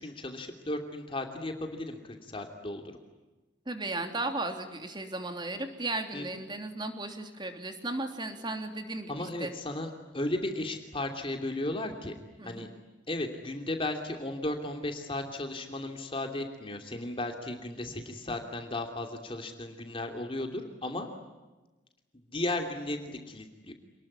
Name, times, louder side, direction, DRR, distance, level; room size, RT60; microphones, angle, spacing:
voice 1, 0.0-2.8 6.1-6.4 9.1-12.1 12.4-12.7 13.1-21.1 22.1-23.7, left 1 dB, 30° left, 4 dB, 2.9 m, -35 dB
voice 2, 3.6-9.5 12.4-12.7, right 2 dB, 25° right, 5 dB, 3.3 m, -35 dB
28.5 x 20.5 x 9.9 m, 1.2 s
head